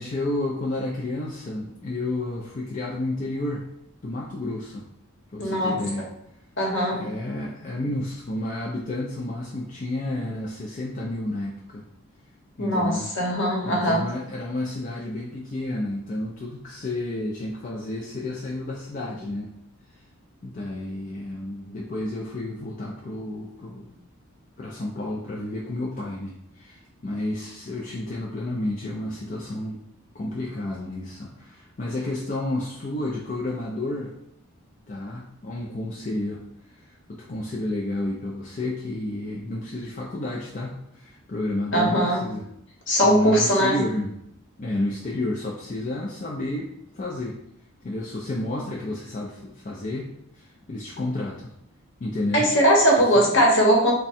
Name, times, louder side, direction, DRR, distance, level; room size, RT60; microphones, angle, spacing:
voice 1, 0.0-3.6 4.0-4.9 5.3-6.1 6.9-11.9 12.6-13.1 13.6-19.5 20.4-23.9 24.6-29.8 30.1-34.1 34.9-36.4 36.7-42.5 43.0-44.1 44.6-46.7 46.9-47.4 47.8-51.5 52.0-52.5 53.1-53.3, left 1 dB, 35° left, -4 dB, 0.4 m, -31 dB
voice 2, 5.4-5.7 6.6-7.1 12.6-14.0 41.7-42.2 42.9-43.8 52.3-53.9, equal, 55° left, -1 dB, 1.0 m, -20 dB
3.5 x 2.2 x 4.1 m, 0.75 s
head